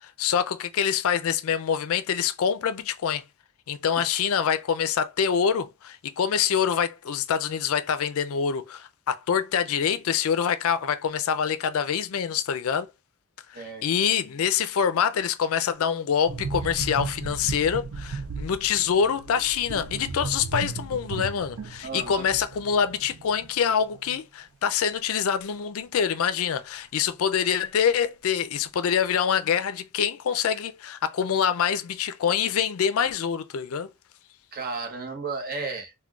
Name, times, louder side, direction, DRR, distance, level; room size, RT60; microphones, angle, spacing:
voice 1, 0.0-3.2 3.7-12.9 13.5-33.9, left 7 dB, 70° left, 0.4 m, -25 dB
sound 1, 16.3-23.7 23.9-24.2, right 4 dB, 75° right, 0.5 m, -35 dB
voice 2, 21.8-22.3 34.5-35.9, right 4 dB, 40° right, 0.8 m, -33 dB
3.7 x 2.2 x 2.3 m
head